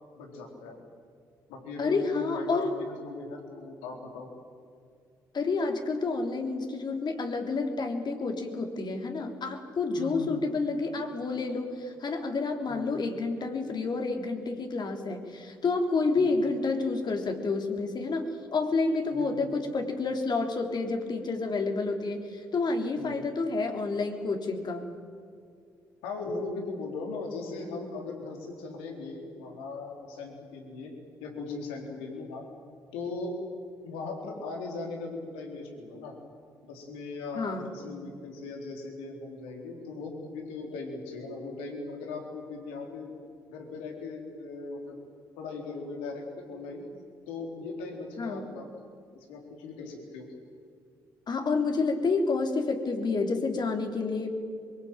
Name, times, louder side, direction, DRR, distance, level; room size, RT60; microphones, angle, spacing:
voice 1, 0.2-0.8 1.5-4.3 10.0-10.5 12.7-12.9 16.1-16.3 19.1-19.5 23.0-23.3 26.0-30.9 31.2-32.5 32.9-33.5 33.8-36.2 36.6-43.2 43.5-45.1 45.4-46.9 47.3-48.7 49.3-50.3, left 3 dB, 80° left, 2 dB, 4.2 m, -38 dB
voice 2, 1.8-2.7 5.3-24.9 37.4-37.7 48.2-48.5 51.3-54.3, left 3 dB, 50° left, 4 dB, 3.7 m, -29 dB
23.5 x 22.0 x 9.1 m, 2.3 s
hypercardioid pair, 50°, 10 cm